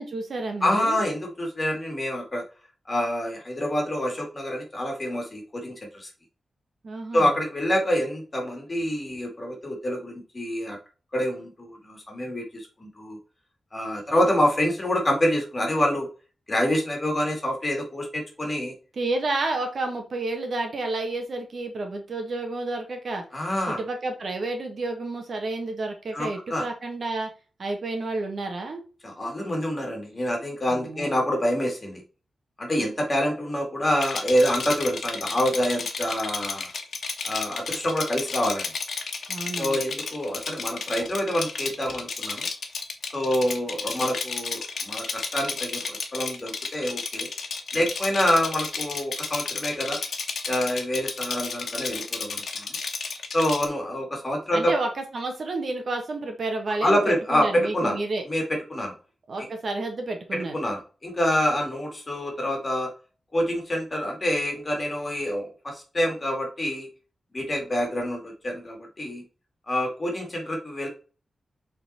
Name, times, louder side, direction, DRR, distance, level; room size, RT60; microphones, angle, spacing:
voice 1, 0.0-1.0 6.8-7.3 18.9-23.2 23.7-27.3 27.6-28.8 30.7-31.1 39.3-39.8 54.5-58.2 59.3-60.5, right 2 dB, 50° right, 4 dB, 1.4 m, -30 dB
voice 2, 0.6-2.4 2.9-6.1 7.1-10.8 11.1-13.2 13.7-16.1 16.5-18.7 23.3-23.8 26.1-26.6 29.0-32.0 32.6-36.7 37.2-38.7 39.6-42.5 43.1-47.3 47.7-50.0 50.5-52.8 53.3-54.7 56.8-58.0 58.2-58.4 58.7-58.9 59.4-59.5 60.3-62.9 63.3-66.9 67.3-69.2 69.7-70.9, equal, 25° left, 2 dB, 2.4 m, -26 dB
Rattle, 34.0-53.7, left 4 dB, 70° left, 1.3 m, -32 dB
7.5 x 4.1 x 4.3 m, 0.36 s
wide cardioid pair, 170°, 0 cm